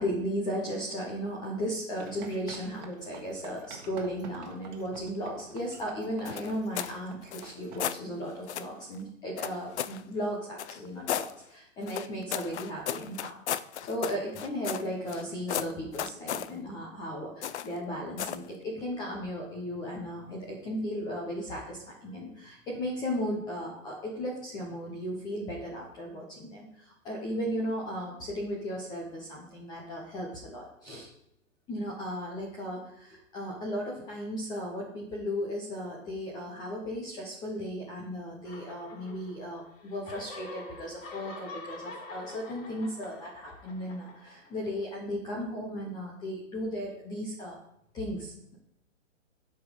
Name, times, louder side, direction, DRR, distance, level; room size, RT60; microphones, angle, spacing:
voice 1, 0.0-13.3 13.8-31.1 31.7-47.6 47.9-48.6, equal, 10° left, -2 dB, 0.9 m, -36 dB
sound 1, 2.0-7.9, right 5 dB, 35° right, 1.7 m, -49 dB
sound 2, 6.2-7.0 7.3-8.0 8.5-8.7 9.4-10.0 10.6-11.3 11.9-15.2 15.5-16.5 17.4-17.8 18.2-18.5, left 10 dB, 60° left, 0.6 m, -34 dB
sound 3, 38.5-39.6 39.9-44.8, left 3 dB, 80° left, 2.9 m, -46 dB
12.0 x 5.2 x 5.1 m, 0.78 s
hypercardioid pair, 165°, 39 cm